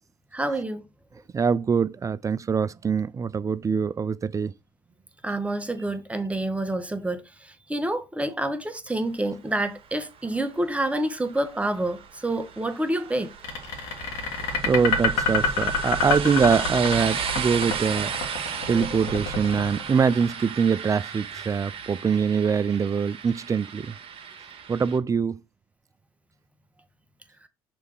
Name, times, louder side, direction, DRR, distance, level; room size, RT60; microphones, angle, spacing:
voice 1, 0.3-0.8 5.2-13.3, right 1 dB, 10° right, 1.2 m, -28 dB
voice 2, 1.3-4.5 14.6-18.1 18.7-23.9 24.7-25.4, right 6 dB, 25° right, 0.4 m, -23 dB
sound 1, 10.0-25.0, right 7 dB, 50° right, 1.3 m, -35 dB
sound 2, 13.4-20.6, left 4 dB, 75° left, 1.8 m, -27 dB
6.4 x 3.4 x 4.9 m
hypercardioid pair, 65°, 12 cm